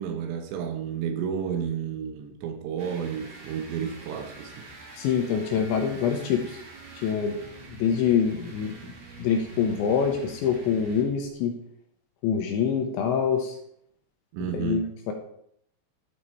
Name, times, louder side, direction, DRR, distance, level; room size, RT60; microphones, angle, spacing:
voice 1, 0.0-4.7 14.3-14.8, right 8 dB, 80° right, 2.6 m, -31 dB
sound 1, 2.8-11.3, right 3 dB, 60° right, 1.8 m, -45 dB
voice 2, 5.0-6.6 7.0-7.4 7.7-8.7 9.2-11.5 12.2-13.6 14.5-15.1, left 7 dB, 80° left, 2.8 m, -25 dB
12.5 x 5.1 x 4.2 m
omnidirectional pair, 5.8 m